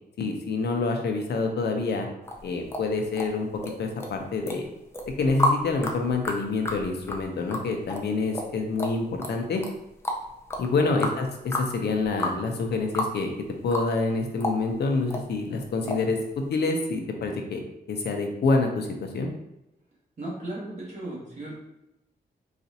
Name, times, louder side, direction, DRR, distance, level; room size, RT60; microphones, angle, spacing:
voice 1, 0.2-2.1 2.4-3.5 3.8-4.7 5.2-9.6 10.6-11.3 11.6-13.3 13.6-17.6 17.9-19.3, left 3 dB, 80° left, 3 dB, 0.6 m, -27 dB
sound 1, 2.3-3.7 4.0-4.6 4.9-13.2 13.4-14.1 14.4-15.2 15.9-16.1 16.4-16.5, left 1 dB, 15° left, 0.4 m, -30 dB
voice 2, 20.2-21.5, right 2 dB, 45° right, -5 dB, 1.4 m, -36 dB
4.0 x 2.4 x 2.7 m, 0.87 s
wide cardioid pair, 130°, 17 cm